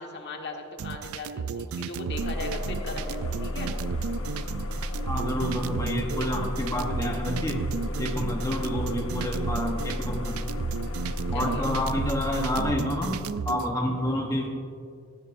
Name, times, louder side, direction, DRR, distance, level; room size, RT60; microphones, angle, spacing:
voice 1, 0.0-3.7 11.3-11.7, left 2 dB, 55° left, 2 dB, 1.5 m, -37 dB
sound 1, 0.8-13.7, right 6 dB, 80° right, 0.4 m, -34 dB
sound 2, 2.1-12.7, left 1 dB, 70° left, 1.0 m, -33 dB
voice 2, 5.1-7.6 8.0-10.4 11.3-13.1 13.5-14.5, left 1 dB, 15° left, 1 dB, 1.0 m, -29 dB
17.5 x 14.0 x 2.6 m, 2.2 s
head